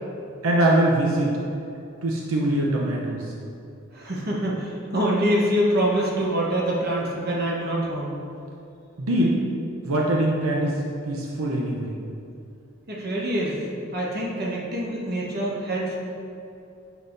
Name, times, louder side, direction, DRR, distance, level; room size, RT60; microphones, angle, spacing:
voice 1, 0.4-1.4 2.0-3.3 9.0-9.4 9.8-11.9, right 1 dB, 85° right, -2 dB, 0.7 m, -23 dB
voice 2, 3.9-8.1 12.9-13.6 13.9-16.0, right 1 dB, 50° right, -4 dB, 1.2 m, -25 dB
7.8 x 5.5 x 2.6 m, 2.7 s
head